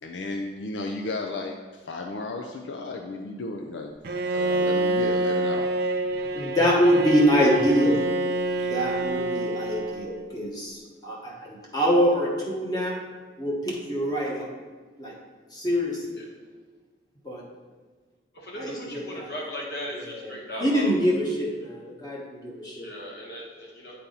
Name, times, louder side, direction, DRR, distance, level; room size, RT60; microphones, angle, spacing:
voice 1, 0.0-1.6 1.9-3.9 4.3-6.5 8.6-8.7, left 2 dB, 80° left, 2 dB, 0.5 m, -34 dB
Bowed string instrument, 4.0-10.3, right 1 dB, 55° right, 0.5 m, -27 dB
voice 2, 6.3-8.0 8.6-13.0 13.4-14.5 15.0-15.1 15.5-16.2 17.2-17.4 18.5-19.3 19.9-20.3 20.6-22.8, equal, 20° left, -4 dB, 1.3 m, -25 dB
voice 3, 18.3-20.8 22.8-24.0, equal, 60° left, -3 dB, 1.6 m, -37 dB
8.3 x 4.2 x 3.9 m, 1.4 s
head